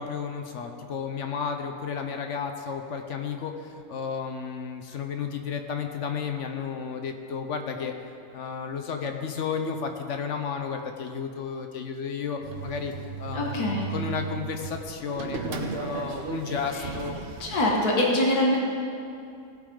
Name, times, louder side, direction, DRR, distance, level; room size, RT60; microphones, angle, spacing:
voice 1, 0.0-7.9 8.3-12.9 13.2-17.2, left 6 dB, 60° left, 5 dB, 1.0 m, -32 dB
sound 1, 12.4-17.8, right 5 dB, 50° right, 0.9 m, -36 dB
voice 2, 13.3-13.9 17.4-18.6, left 1 dB, 85° left, -2 dB, 1.8 m, -23 dB
17.0 x 8.7 x 3.8 m, 2.5 s
omnidirectional pair, 1.6 m